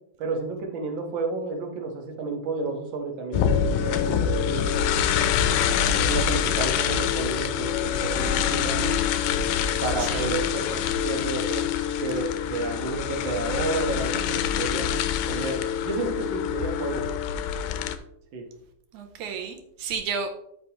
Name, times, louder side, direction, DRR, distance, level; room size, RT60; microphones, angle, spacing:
voice 1, 0.2-4.9 5.9-8.9 9.8-11.7 12.0-14.9 15.3-17.1 18.3-18.4, right 3 dB, 50° right, 2 dB, 1.5 m, -31 dB
sound 1, 3.3-18.0, left 8 dB, 80° left, 2.0 m, -25 dB
voice 2, 18.9-20.3, right 6 dB, 75° right, 5 dB, 2.0 m, -32 dB
13.0 x 5.5 x 3.0 m, 0.76 s
omnidirectional pair, 3.7 m